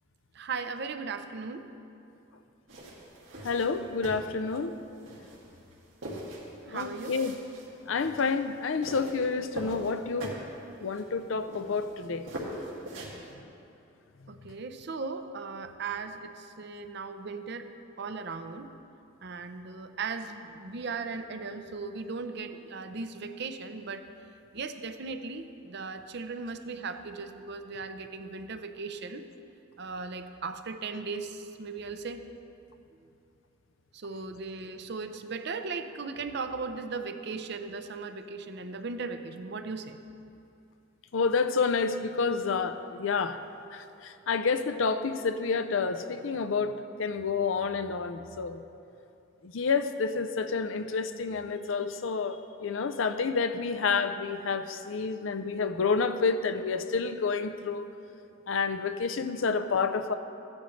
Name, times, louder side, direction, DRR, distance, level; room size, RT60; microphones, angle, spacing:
voice 1, 0.3-1.7 6.7-7.2 14.3-17.7 18.0-18.7 19.2-24.0 24.5-29.2 29.8-32.2 33.9-40.0, right 4 dB, 55° right, 8 dB, 0.6 m, -37 dB
sound 1, 2.7-13.3, right 1 dB, 85° right, 2.2 m, -42 dB
voice 2, 3.4-4.8 6.7-7.3 7.9-10.4 10.8-12.3 41.1-43.4 43.7-48.6 49.4-57.9 58.5-60.1, left 5 dB, 75° left, 10 dB, 0.5 m, -29 dB
15.0 x 10.5 x 3.2 m, 2.7 s
head